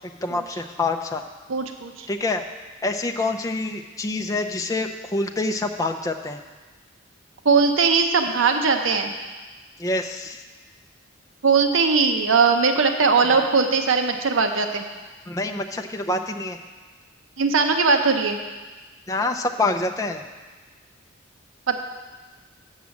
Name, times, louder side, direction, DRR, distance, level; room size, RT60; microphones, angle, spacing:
voice 1, 0.2-1.2 2.1-2.4 2.8-6.4 9.8-10.4 15.3-16.6 19.1-20.2, left 2 dB, 15° left, 4 dB, 0.5 m, -26 dB
voice 2, 1.5-2.1 7.4-9.1 11.4-14.8 17.4-18.4 21.7-21.8, right 4 dB, 85° right, 5 dB, 0.7 m, -20 dB
7.3 x 6.3 x 7.1 m, 1.3 s
head